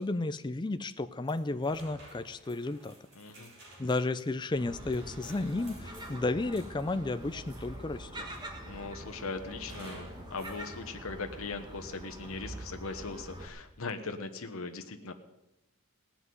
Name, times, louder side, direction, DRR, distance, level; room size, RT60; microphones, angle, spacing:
voice 1, 0.0-2.9 3.8-8.3, left 2 dB, 20° left, 10 dB, 0.4 m, -33 dB
sound 1, 1.2-7.9 8.3-8.9 9.7-10.6, right 1 dB, 50° right, 6.2 m, -54 dB
voice 2, 3.1-3.5 8.7-15.1, left 3 dB, 75° left, 6 dB, 1.2 m, -39 dB
Gull seagull, 4.6-13.5, right 1 dB, 20° right, 1.6 m, -45 dB
17.0 x 6.0 x 9.4 m, 0.96 s
head